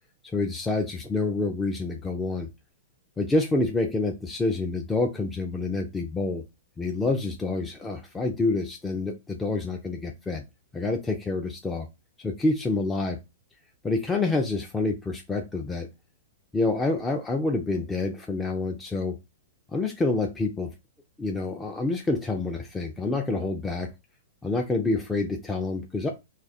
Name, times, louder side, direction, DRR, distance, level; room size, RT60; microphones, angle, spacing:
voice 1, 0.3-2.5 3.2-6.4 6.8-10.4 10.7-11.9 12.2-13.2 13.8-15.9 16.5-19.2 19.7-20.7 21.2-23.9 24.4-26.1, left 3 dB, 10° left, 2 dB, 0.4 m, -27 dB
2.5 x 2.4 x 4.0 m, 0.24 s
hypercardioid pair, 150°, 0 cm